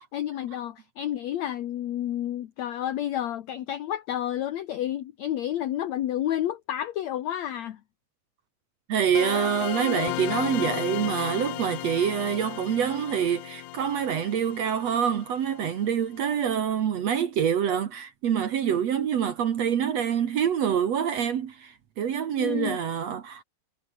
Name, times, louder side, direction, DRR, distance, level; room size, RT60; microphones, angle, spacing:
voice 1, 0.1-7.8 22.4-22.8, left 11 dB, 65° left, 1.9 m, -30 dB
voice 2, 8.9-23.4, right 8 dB, 55° right, 2.1 m, -26 dB
sound 1, 9.1-15.8, left 17 dB, 90° left, 1.7 m, -34 dB
omnidirectional pair, 4.4 m